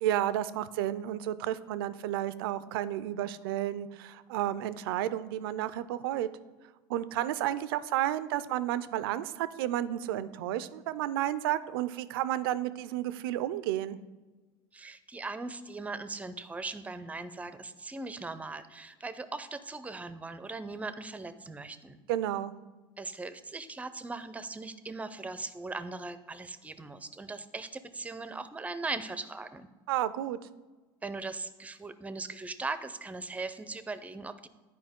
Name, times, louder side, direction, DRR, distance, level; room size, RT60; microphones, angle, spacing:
voice 1, 0.0-6.3 6.9-14.0 22.1-22.5 29.9-30.4, right 12 dB, 85° right, 15 dB, 0.4 m, -31 dB
voice 2, 14.7-22.0 23.0-29.7 31.0-34.5, right 3 dB, 10° right, 12 dB, 0.5 m, -39 dB
10.0 x 4.7 x 3.6 m, 1.2 s
supercardioid pair, 105°, 12 cm